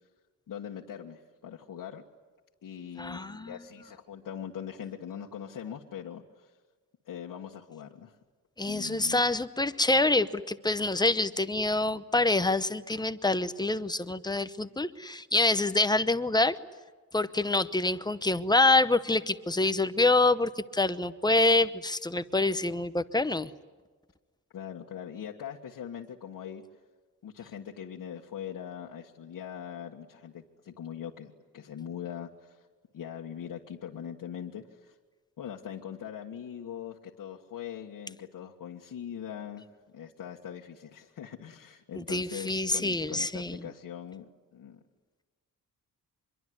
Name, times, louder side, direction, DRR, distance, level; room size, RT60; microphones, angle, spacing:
voice 1, 0.5-2.0 2.6-6.5 7.1-8.2 8.6-9.2 24.5-26.6 27.2-32.6 32.9-35.0 35.4-39.7 39.9-44.3 44.5-44.8, left 9 dB, 70° left, -2 dB, 1.8 m, -41 dB
voice 2, 3.0-3.6 8.6-16.6 17.1-23.5 42.0-43.6, left 2 dB, 10° left, 12 dB, 0.8 m, -26 dB
25.5 x 23.0 x 9.6 m, 1.4 s
wide cardioid pair, 145°, 35 cm